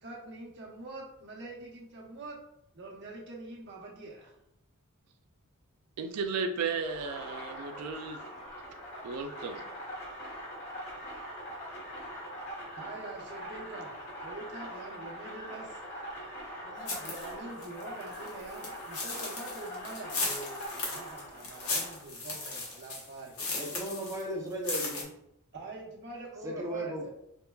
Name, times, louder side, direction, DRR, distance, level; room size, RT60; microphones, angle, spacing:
voice 1, 0.0-2.4 2.7-4.3 12.8-15.8 16.6-23.3 25.5-27.1, right 2 dB, 50° right, -2 dB, 0.9 m, -44 dB
voice 2, 6.0-8.2 9.0-9.6, right 4 dB, 90° right, 5 dB, 0.3 m, -34 dB
sound 1, 6.8-22.0, equal, 50° left, 1.2 m, -43 dB
sound 2, 16.9-17.3 17.6-24.2 24.5-25.0, left 3 dB, 75° left, 1.0 m, -36 dB
voice 3, 23.5-25.1 26.4-27.1, right 1 dB, 15° right, -2 dB, 0.5 m, -36 dB
5.2 x 2.2 x 2.3 m, 0.80 s
head